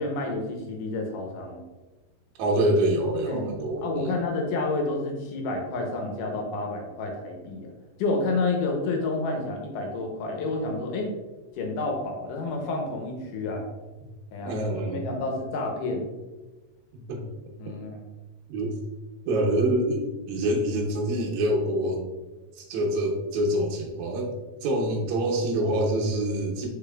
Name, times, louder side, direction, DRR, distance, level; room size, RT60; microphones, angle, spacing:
voice 1, 0.0-1.6 3.3-3.5 3.8-7.7 8.0-11.1 11.6-13.6 14.3-16.1 17.6-18.0, left 3 dB, 80° left, 2 dB, 2.1 m, -29 dB
voice 2, 2.4-4.1 14.4-15.2 16.9-17.2 18.5-18.8 19.3-22.0 22.6-24.3 24.6-26.7, right 1 dB, 70° right, -1 dB, 2.0 m, -26 dB
5.0 x 4.4 x 2.3 m, 1.2 s
omnidirectional pair, 3.9 m